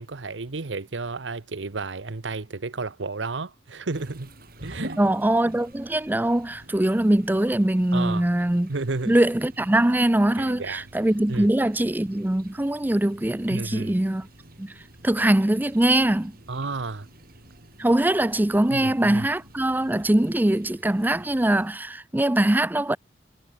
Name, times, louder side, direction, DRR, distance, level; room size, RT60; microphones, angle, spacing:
voice 1, 0.0-4.3 4.6-5.0 7.9-8.3 8.7-9.2 10.4-10.9 11.3-11.5 13.5-14.0 16.5-17.1 18.7-19.3, right 3 dB, 90° right, 1.0 m, -32 dB
sound 1, 3.9-21.7, right 1 dB, 55° right, 6.6 m, -47 dB
voice 2, 5.0-8.7 9.1-14.3 14.6-14.7 15.0-16.3 17.8-23.0, right 1 dB, 10° right, 0.5 m, -22 dB
head